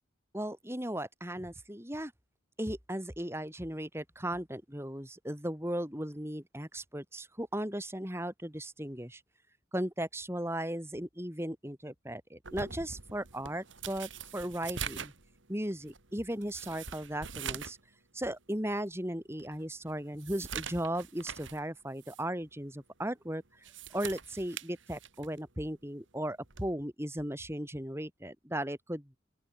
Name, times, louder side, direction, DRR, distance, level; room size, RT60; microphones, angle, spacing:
voice 1, 0.3-2.1 2.6-9.2 9.7-15.1 15.5-17.8 18.1-23.4 23.9-29.1, right 1 dB, 15° right, 5.5 m, -36 dB
sound 1, 12.4-17.8 18.2-18.3 18.9-19.0 19.4-21.6 22.0-22.2 23.5-25.4 26.5-26.7, right 7 dB, 85° right, 2.9 m, -43 dB
open air
head